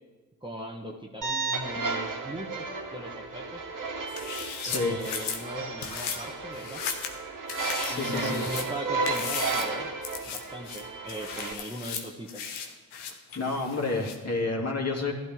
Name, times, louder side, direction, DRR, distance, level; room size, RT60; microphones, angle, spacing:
voice 1, 0.4-3.7 4.7-6.8 7.9-9.9 10.3-12.5, equal, 10° right, 0 dB, 1.4 m, -39 dB
sound 1, 1.2-11.5, right 3 dB, 40° right, 2.0 m, -33 dB
sound 2, 4.1-5.4 5.8-6.2 6.5-7.2 7.5-8.7 9.0-9.7 10.0-10.4 10.6-14.2, left 7 dB, 85° left, 1.3 m, -36 dB
voice 2, 4.6-5.0 7.8-8.5 13.3-15.1, left 3 dB, 35° left, -1 dB, 2.8 m, -29 dB
15.0 x 12.0 x 3.8 m, 1.3 s
supercardioid pair, 50°, 46 cm